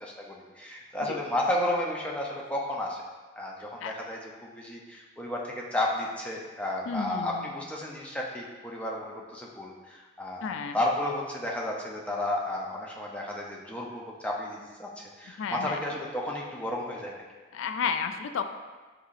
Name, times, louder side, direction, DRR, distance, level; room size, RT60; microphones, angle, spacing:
voice 1, 0.0-3.0 3.4-10.5 10.7-17.1, left 1 dB, 5° left, -2 dB, 0.5 m, -32 dB
voice 2, 6.9-7.5 10.4-10.8 15.4-15.8 17.5-18.4, left 6 dB, 80° left, 8 dB, 0.3 m, -32 dB
5.4 x 3.7 x 2.4 m, 1.3 s
head